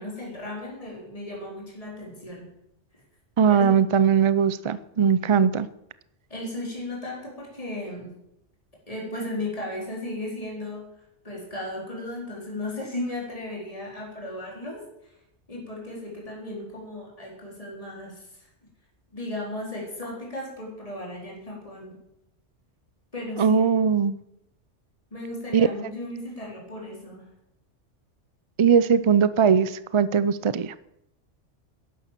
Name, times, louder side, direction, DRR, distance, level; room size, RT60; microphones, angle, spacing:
voice 1, 0.0-2.5 3.5-3.8 6.3-8.1 8.9-10.8 11.2-15.1 15.5-18.5 19.1-22.0 23.1-23.6 25.1-27.3, left 1 dB, 30° left, -3 dB, 4.3 m, -35 dB
voice 2, 3.4-5.7 23.4-24.2 25.5-25.9 28.6-30.7, right 7 dB, 45° right, 16 dB, 0.4 m, -20 dB
12.0 x 11.0 x 7.5 m, 0.81 s
omnidirectional pair, 1.2 m